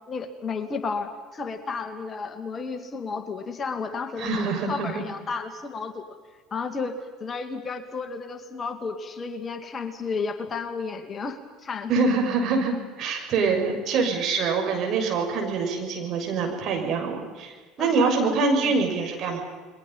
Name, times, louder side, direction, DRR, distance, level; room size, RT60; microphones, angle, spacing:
voice 1, 0.1-6.0 6.5-11.9 17.8-18.3 18.6-18.7, left 4 dB, 35° left, 7 dB, 2.4 m, -32 dB
voice 2, 4.2-5.0 11.9-19.4, right 4 dB, 50° right, 2 dB, 6.5 m, -25 dB
29.5 x 22.0 x 5.7 m, 1.4 s
hypercardioid pair, 65°, 0 cm